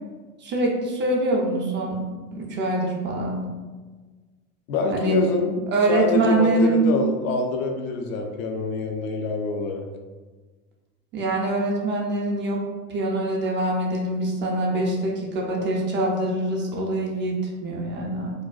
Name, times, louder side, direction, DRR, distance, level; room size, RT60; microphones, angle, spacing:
voice 1, 0.4-2.0 2.3-3.4 4.9-5.2 5.7-6.8 11.1-12.6 12.9-18.3, right 2 dB, 25° right, -2 dB, 0.4 m, -24 dB
voice 2, 4.7-5.6 5.9-9.9, left 3 dB, 65° left, 3 dB, 0.5 m, -25 dB
2.5 x 2.2 x 2.3 m, 1.3 s
hypercardioid pair, 75°, 44 cm